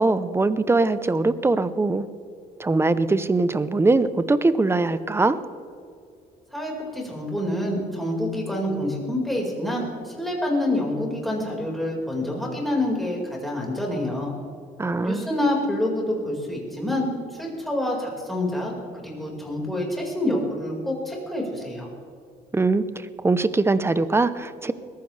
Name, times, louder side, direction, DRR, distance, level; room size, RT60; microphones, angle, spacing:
voice 1, 0.0-2.1 2.6-5.4 14.8-15.3 22.5-24.7, right 3 dB, 15° right, 14 dB, 0.7 m, -22 dB
voice 2, 6.5-14.3 15.0-17.1 17.4-18.7 19.0-21.9, left 1 dB, ahead, -2 dB, 4.8 m, -27 dB
21.5 x 15.0 x 3.3 m, 2.4 s
cardioid pair, 110°, 17 cm